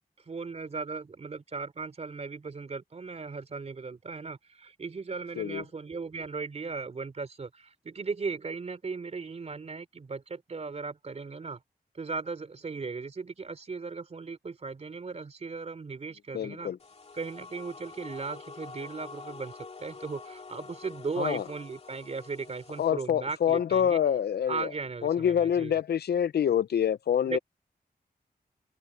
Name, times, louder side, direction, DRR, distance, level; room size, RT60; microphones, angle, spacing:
voice 1, 0.2-11.6 11.9-16.7 17.1-19.5 19.8-24.0 24.5-25.8 27.2-27.4, right 4 dB, 40° right, 3.3 m, -37 dB
voice 2, 16.3-16.8 21.2-21.4 22.8-24.7 25.0-27.4, left 9 dB, 85° left, 0.6 m, -26 dB
sound 1, 16.8-22.9, left 4 dB, 40° left, 2.4 m, -47 dB
wide cardioid pair, 160°, 16 cm